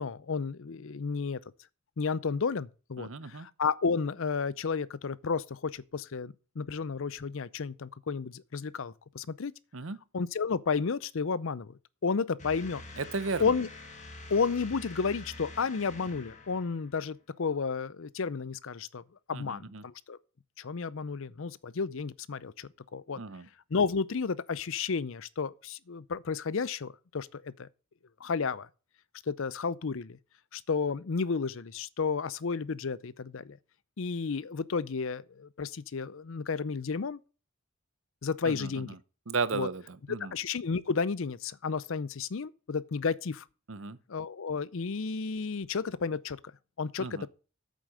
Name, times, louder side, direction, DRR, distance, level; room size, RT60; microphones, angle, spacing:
voice 1, 0.0-1.4 2.0-9.5 10.1-11.7 12.0-12.8 13.4-13.7 14.3-19.0 19.3-20.2 20.6-23.2 23.7-27.7 28.2-28.7 29.3-30.2 30.5-33.6 34.0-37.2 38.2-39.0 39.5-39.7 40.3-43.4 44.1-46.4 46.8-47.3, left 5 dB, 65° left, 0.5 m, -32 dB
voice 2, 3.0-3.5 9.7-10.0 13.0-13.5 19.3-19.8 23.2-23.5 38.4-39.0 39.3-40.3 43.7-44.0 47.0-47.3, right 4 dB, 60° right, 0.8 m, -35 dB
sound 1, 12.4-17.1, left 2 dB, 30° left, 1.6 m, -47 dB
8.5 x 7.6 x 6.4 m
head